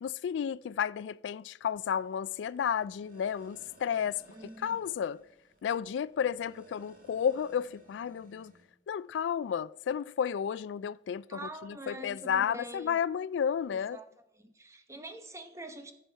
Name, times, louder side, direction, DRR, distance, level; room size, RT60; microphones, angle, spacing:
voice 1, 0.0-4.2 4.6-5.2 5.6-8.5 8.9-14.0, left 8 dB, 90° left, 0.3 m, -32 dB
sound 1, 1.7-8.6, right 1 dB, 55° right, 2.0 m, -59 dB
voice 2, 4.3-4.8 11.3-13.0 13.7-14.1 14.4-15.9, right 1 dB, 15° right, 1.0 m, -45 dB
14.0 x 7.0 x 4.5 m
head